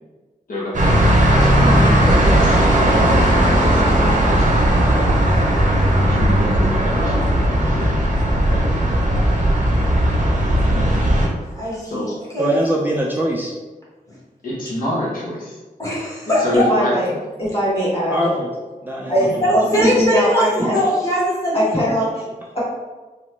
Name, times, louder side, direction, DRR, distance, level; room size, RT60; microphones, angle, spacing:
voice 1, 0.5-8.0 8.4-8.7 9.2-9.3 11.9-12.1 14.4-15.6 16.4-16.9 19.2-19.3 19.7-19.9, left 1 dB, 70° left, -6 dB, 0.7 m, -27 dB
sound 1, 0.7-11.3, right 1 dB, 60° right, 0.6 m, -16 dB
voice 2, 10.7-11.0 11.5-12.5 15.8-16.7 19.1-22.0, equal, 20° left, -7 dB, 1.2 m, -21 dB
voice 3, 12.4-13.5 18.1-18.5 18.8-19.5, equal, 15° right, -3 dB, 0.4 m, -22 dB
voice 4, 16.5-17.1 17.4-18.2 19.1-20.8 21.5-22.0 22.5-22.6, equal, 40° left, -8 dB, 1.4 m, -21 dB
2.9 x 2.0 x 3.1 m, 1.2 s
wide cardioid pair, 85°, 15 cm